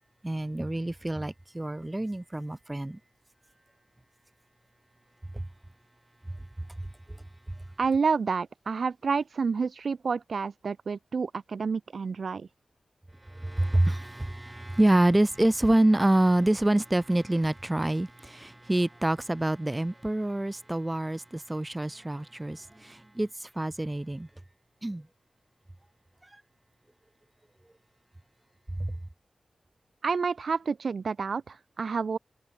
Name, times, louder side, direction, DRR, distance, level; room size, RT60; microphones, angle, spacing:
voice 1, 0.2-3.0 5.3-5.4 13.3-24.3 24.8-25.1 28.8-28.9, right 1 dB, 15° right, 4.2 m, -26 dB
voice 2, 7.8-12.5 30.0-32.2, right 5 dB, 55° right, 6.9 m, -29 dB
wide cardioid pair, 160°, 0 cm